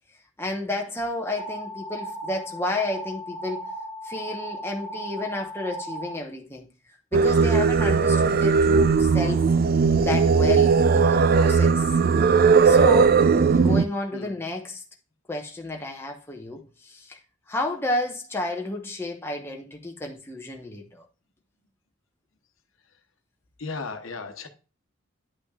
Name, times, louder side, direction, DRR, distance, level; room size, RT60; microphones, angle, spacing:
voice 1, 0.4-3.6 4.0-6.7 7.1-9.4 10.0-11.8 12.6-13.2 13.5-14.8 15.3-17.2 17.5-21.0, left 2 dB, 10° left, 0.9 m, -31 dB
sound 1, 1.4-6.2, right 1 dB, 80° right, 2.6 m, -36 dB
Singing, 7.1-13.9, right 5 dB, 45° right, 0.3 m, -18 dB
voice 2, 23.6-24.5, left 4 dB, 75° left, 1.0 m, -35 dB
9.7 x 6.0 x 2.3 m
head